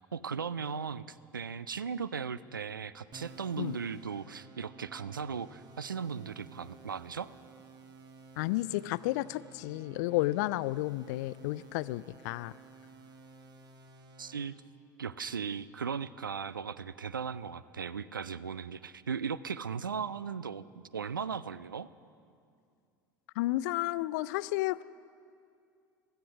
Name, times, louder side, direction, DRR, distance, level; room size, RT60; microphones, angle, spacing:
voice 1, 0.1-7.3 14.2-14.5 15.0-20.6 20.9-21.9, right 6 dB, 85° right, 17 dB, 0.4 m, -37 dB
sound 1, 3.1-14.5, right 3 dB, 40° right, 1.5 m, -54 dB
voice 2, 8.4-12.5 23.4-24.8, left 18 dB, 60° left, 19 dB, 0.4 m, -32 dB
16.0 x 13.0 x 6.2 m, 2.4 s
figure-of-eight pair, 70°, 11 cm